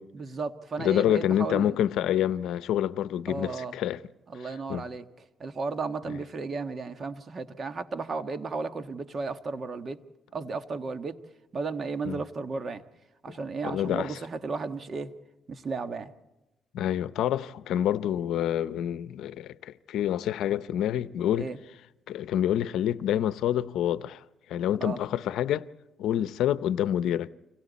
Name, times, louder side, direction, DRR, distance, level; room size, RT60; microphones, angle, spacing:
voice 1, 0.1-1.8 3.3-3.8 4.3-5.0 5.4-10.0 10.3-11.2 11.5-12.8 13.2-15.1 15.5-16.1 21.4-21.6 24.8-25.0, right 4 dB, 45° right, 1.5 m, -34 dB
voice 2, 0.8-4.0 4.4-4.8 12.1-12.2 13.3-13.4 13.6-14.2 16.7-21.5 22.1-24.2 24.5-25.7 26.0-27.3, left 11 dB, 80° left, 0.7 m, -27 dB
30.0 x 25.5 x 4.2 m
cardioid pair, 90°, 0 cm